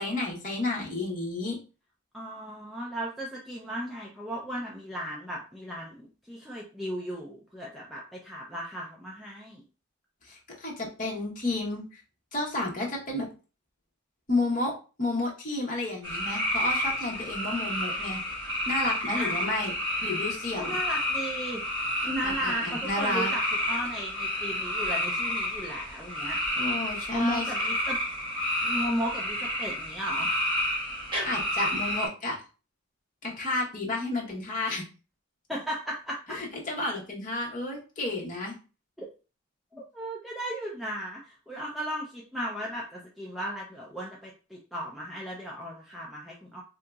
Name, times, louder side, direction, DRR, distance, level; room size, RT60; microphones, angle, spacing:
voice 1, 0.0-1.6 10.2-12.0 12.3-13.3 14.3-14.7 15.0-18.2 18.7-19.7 20.0-20.8 22.2-23.3 26.6-27.4 31.2-32.4 33.2-34.8 36.3-38.5, left 2 dB, 40° left, -3 dB, 1.0 m, -31 dB
voice 2, 2.1-9.6 19.2-19.5 20.6-21.6 22.0-26.4 27.1-28.0 28.6-30.3 35.5-36.4 39.0-39.1 39.7-46.6, equal, ahead, -4 dB, 0.4 m, -35 dB
sound 1, 16.0-32.1, left 1 dB, 25° right, 1.3 m, -30 dB
3.8 x 2.8 x 2.3 m, 0.34 s
head